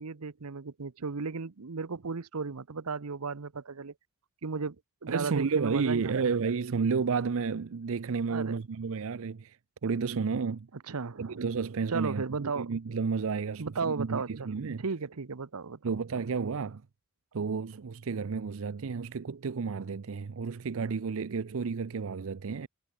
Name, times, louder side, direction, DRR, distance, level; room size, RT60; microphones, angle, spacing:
voice 1, 0.0-3.9 4.4-4.8 5.0-6.3 8.3-8.5 10.7-11.4 11.9-12.7 13.6-15.8, right 4 dB, 90° right, 0.9 m, -35 dB
voice 2, 5.1-9.6 9.8-10.7 11.2-14.8 15.8-16.8 17.3-22.7, right 5 dB, 65° right, 0.5 m, -31 dB
head